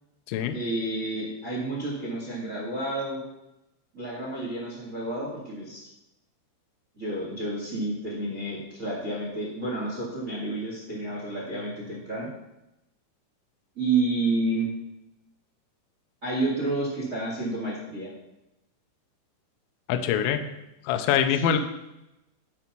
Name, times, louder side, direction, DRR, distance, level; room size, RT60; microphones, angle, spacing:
voice 1, 0.5-3.2 3.9-5.9 6.9-12.3 13.7-14.7 16.2-18.1 20.4-20.5 21.3-21.6, right 2 dB, 80° right, -3 dB, 0.7 m, -30 dB
voice 2, 19.9-20.4 20.8-21.6, left 9 dB, 85° left, 7 dB, 2.7 m, -24 dB
11.0 x 4.1 x 5.9 m, 0.91 s
omnidirectional pair, 5.7 m